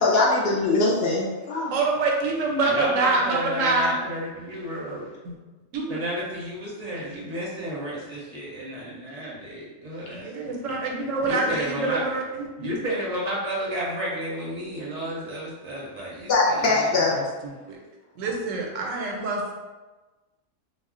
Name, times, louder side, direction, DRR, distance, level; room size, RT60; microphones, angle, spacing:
voice 1, 0.0-1.7 16.3-17.2, left 3 dB, 60° left, -3 dB, 0.7 m, -21 dB
voice 2, 1.7-3.9 5.2-5.3 5.7-6.0 10.1-12.5 17.0-17.8 18.2-19.5, right 3 dB, 85° right, 0 dB, 1.0 m, -26 dB
voice 3, 2.6-5.1 5.9-10.2 11.2-12.0 12.6-16.9, right 1 dB, 40° right, -5 dB, 0.6 m, -32 dB
2.3 x 2.1 x 3.6 m, 1.2 s
omnidirectional pair, 1.3 m